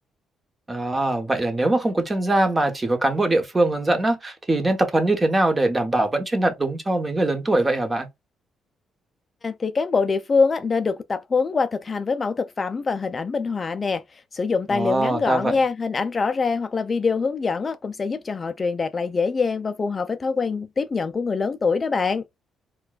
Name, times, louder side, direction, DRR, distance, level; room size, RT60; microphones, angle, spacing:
voice 1, 0.7-8.1 14.7-15.6, right 2 dB, 20° right, 1.0 m, -22 dB
voice 2, 9.4-22.2, left 4 dB, 35° left, 0.3 m, -24 dB
4.4 x 2.3 x 2.3 m
cardioid pair, 90°, 0 cm